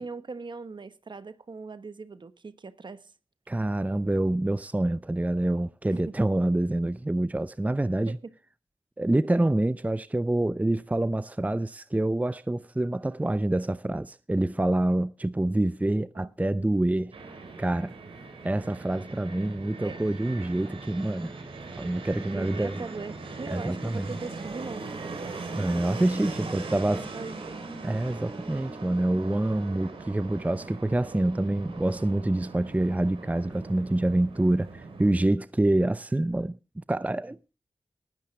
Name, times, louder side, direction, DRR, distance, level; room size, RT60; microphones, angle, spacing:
voice 1, 0.0-3.1 5.9-6.1 8.1-8.3 16.1-16.3 19.8-20.1 22.2-25.5 26.4-27.6, right 4 dB, 60° right, 1.2 m, -40 dB
voice 2, 3.5-8.2 9.0-17.1 17.6-18.0 18.4-21.3 21.8-22.8 23.5-24.1 25.5-27.1 27.8-37.5, right 1 dB, 15° right, 0.6 m, -26 dB
Fixed-wing aircraft airplane, 17.1-35.1, right 3 dB, 90° right, 3.5 m, -40 dB
19.5 x 9.7 x 3.3 m
cardioid pair, 45°, 9 cm